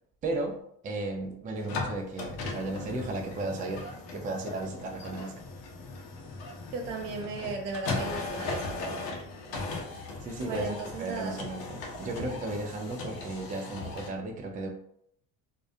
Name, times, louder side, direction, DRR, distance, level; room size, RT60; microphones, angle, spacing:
voice 1, 0.2-0.6 0.8-5.3 10.2-14.7, right 2 dB, 20° right, 1 dB, 0.4 m, -35 dB
sound 1, 1.6-14.1, left 3 dB, 75° left, 0.7 m, -38 dB
voice 2, 6.7-8.8 10.4-11.4, right 4 dB, 75° right, 2 dB, 0.7 m, -36 dB
2.3 x 2.1 x 2.6 m, 0.70 s
supercardioid pair, 75°, 43 cm